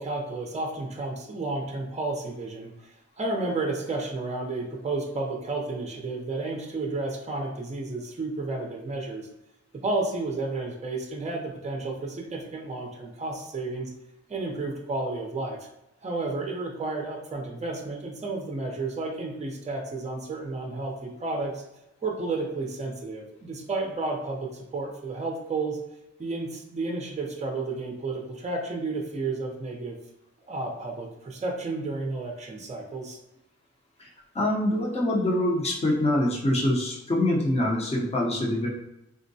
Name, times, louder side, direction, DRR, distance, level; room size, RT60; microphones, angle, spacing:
voice 1, 0.0-9.3 9.8-13.9 14.3-15.6 16.0-21.6 22.0-25.8 26.2-30.0 30.5-33.2, right 3 dB, 25° right, 0 dB, 0.6 m, -32 dB
voice 2, 34.3-38.7, left 1 dB, 20° left, -3 dB, 0.6 m, -25 dB
3.6 x 2.1 x 2.7 m, 0.89 s
wide cardioid pair, 100°, 29 cm